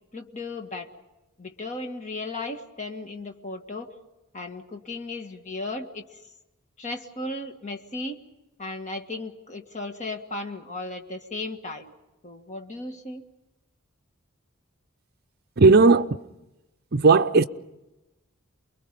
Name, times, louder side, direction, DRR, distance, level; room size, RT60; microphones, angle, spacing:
voice 1, 0.1-0.9 1.4-3.9 4.3-6.3 6.8-8.2 8.6-11.9 12.2-13.2, left 2 dB, 35° left, 1.8 m, -35 dB
voice 2, 15.6-16.1 16.9-17.4, right 4 dB, 50° right, 0.7 m, -16 dB
29.0 x 22.0 x 5.3 m
head